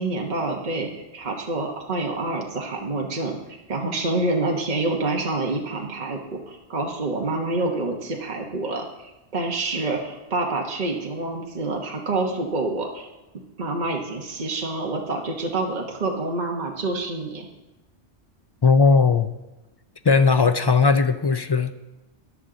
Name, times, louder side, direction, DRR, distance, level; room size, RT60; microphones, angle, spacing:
voice 1, 0.0-13.1 13.6-17.5, right 2 dB, 40° right, 1 dB, 1.3 m, -27 dB
voice 2, 18.6-19.3 20.0-21.7, left 4 dB, 45° left, 9 dB, 0.3 m, -18 dB
14.5 x 9.9 x 3.9 m, 1.1 s
omnidirectional pair, 1.2 m